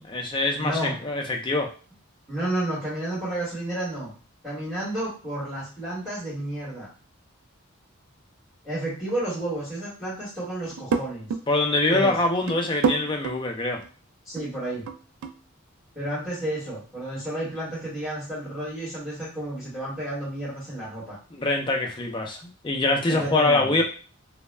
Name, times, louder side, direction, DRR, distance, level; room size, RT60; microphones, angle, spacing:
voice 1, 0.1-1.7 11.5-13.8 21.4-22.4 22.6-23.8, left 2 dB, 20° left, 1 dB, 0.4 m, -24 dB
voice 2, 0.6-1.0 2.3-4.1 4.4-6.9 8.6-11.3 11.9-12.2 14.2-14.9 15.9-21.2 23.1-23.8, right 1 dB, ahead, -11 dB, 1.1 m, -31 dB
sound 1, 10.7-11.4 11.9-12.0 12.3-13.4 13.8-13.9 14.4-15.4, right 5 dB, 80° right, 0.3 m, -28 dB
2.2 x 2.0 x 3.1 m, 0.38 s
head